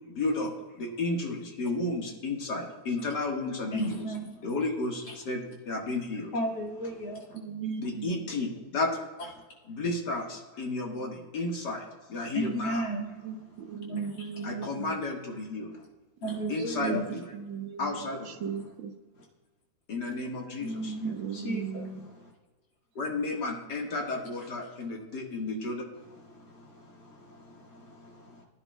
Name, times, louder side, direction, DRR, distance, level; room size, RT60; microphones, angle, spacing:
voice 1, 0.1-4.2 4.4-6.3 7.8-9.3 9.6-12.9 14.4-15.7 16.5-17.3 17.8-18.3 19.9-20.9 23.0-25.9, left 2 dB, 60° left, 0 dB, 2.1 m, -33 dB
voice 2, 3.7-4.5 5.0-5.1 6.3-7.4 12.3-14.2 15.7-15.8 16.2-17.1 19.2-19.3 20.6-22.3 26.2-28.4, right 1 dB, 85° left, -3 dB, 3.0 m, -36 dB
voice 3, 7.3-8.3 13.2-14.9 16.2-16.5 16.8-17.9 18.3-18.9 21.0-22.0, right 7 dB, 75° right, 4 dB, 1.6 m, -37 dB
19.5 x 10.0 x 2.3 m, 1.3 s
omnidirectional pair, 2.1 m